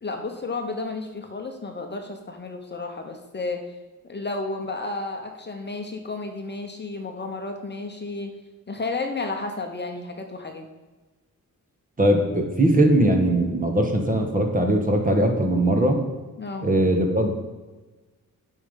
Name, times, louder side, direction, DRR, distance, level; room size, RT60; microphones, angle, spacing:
voice 1, 0.0-3.6 4.0-8.3 8.7-10.7 16.4-16.7, left 3 dB, 30° left, 4 dB, 0.8 m, -32 dB
voice 2, 12.0-16.0 16.6-17.3, right 1 dB, 25° right, 4 dB, 1.3 m, -20 dB
8.4 x 5.5 x 5.5 m, 1.2 s
wide cardioid pair, 125°, 33 cm